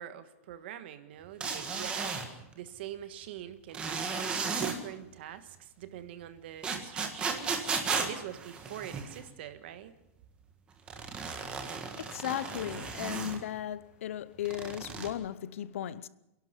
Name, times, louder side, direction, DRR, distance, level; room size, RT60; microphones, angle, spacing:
voice 1, 0.0-9.9, right 11 dB, 45° right, 1.6 m, -44 dB
sound 1, 1.4-2.3 3.7-4.8 6.6-9.2 10.9-13.4 14.4-15.1, right 5 dB, 10° right, 1.7 m, -34 dB
voice 2, 11.7-16.1, left 11 dB, 65° left, 0.8 m, -36 dB
28.0 x 11.5 x 8.2 m
supercardioid pair, 180°, 8 cm